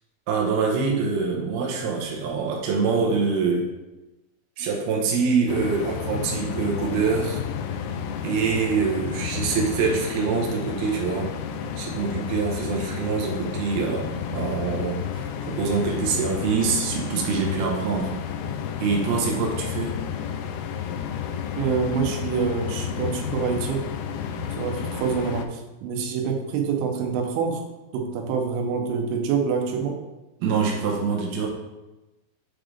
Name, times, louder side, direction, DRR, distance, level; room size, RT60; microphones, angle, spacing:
voice 1, 0.3-3.7 4.6-7.4 8.2-11.3 11.8-18.1 18.8-20.0 30.4-31.5, right 5 dB, 70° right, -2 dB, 2.5 m, -25 dB
sound 1, 5.5-25.5, left 8 dB, 85° left, 2.6 m, -31 dB
voice 2, 21.6-23.9 24.5-27.6 27.9-30.0, right 6 dB, 90° right, 3 dB, 3.3 m, -26 dB
7.6 x 3.8 x 3.3 m, 1.0 s
omnidirectional pair, 5.5 m